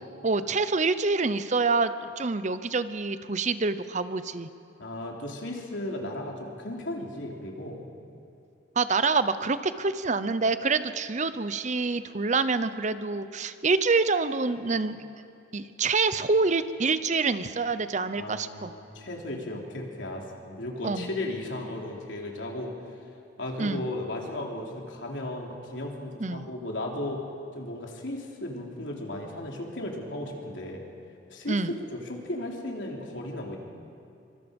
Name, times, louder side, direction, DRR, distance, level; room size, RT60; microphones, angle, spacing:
voice 1, 0.2-4.5 8.8-15.1 15.5-18.7 20.8-21.1 23.6-23.8 26.2-26.5 31.5-31.7, right 4 dB, 40° right, 12 dB, 0.8 m, -26 dB
voice 2, 4.8-7.8 18.1-22.7 23.4-27.2 27.5-30.8 31.3-33.6, left 1 dB, 90° left, 0 dB, 3.6 m, -35 dB
25.0 x 25.0 x 5.3 m, 2.8 s
head